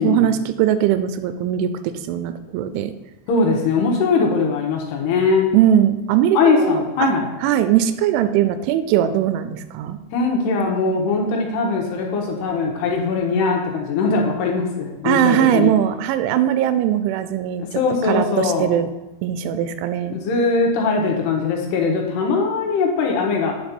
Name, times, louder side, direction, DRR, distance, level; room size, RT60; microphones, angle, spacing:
voice 1, 0.0-2.9 5.5-7.1 7.4-10.0 15.0-17.6 18.0-18.9 19.2-20.2, right 11 dB, 90° right, 11 dB, 3.0 m, -20 dB
voice 2, 3.3-5.5 6.3-7.3 10.1-15.7 17.6-18.7 20.1-23.5, left 4 dB, 70° left, 0 dB, 3.0 m, -20 dB
9.0 x 5.9 x 5.3 m, 0.97 s
omnidirectional pair, 5.3 m